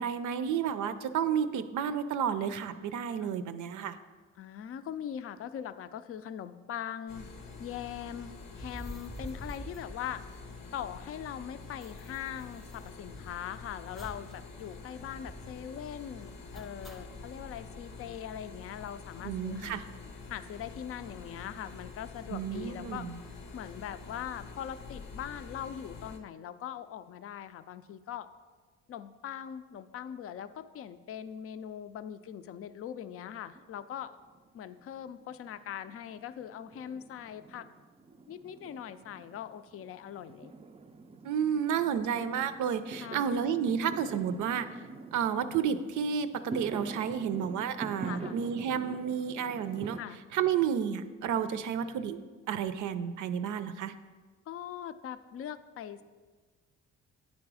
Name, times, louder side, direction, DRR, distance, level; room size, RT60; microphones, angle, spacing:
voice 1, 0.0-4.0 19.2-19.8 22.3-23.2 41.2-44.7 45.1-50.0 50.3-52.2 52.5-53.9, right 8 dB, 80° right, 11 dB, 0.5 m, -31 dB
voice 2, 3.2-3.5 4.4-7.2 7.6-10.2 10.7-19.9 20.3-23.1 23.5-28.3 28.9-34.2 34.5-37.7 38.3-40.5 43.0-43.2 48.0-48.4 50.0-50.2 54.5-56.0, left 9 dB, 50° left, 12 dB, 0.4 m, -41 dB
sound 1, 7.1-26.2, left 4 dB, 90° left, 0.8 m, -47 dB
sound 2, 8.5-10.8 11.1-11.2 11.3-13.5 14.0-14.4 14.7-14.8 15.1-15.6 16.5-17.3, equal, ahead, 0.7 m, -47 dB
Fireworks, 33.6-34.5 34.8-50.0, right 3 dB, 20° right, 0.3 m, -45 dB
9.6 x 4.0 x 4.8 m, 1.4 s
cardioid pair, 90°, 30 cm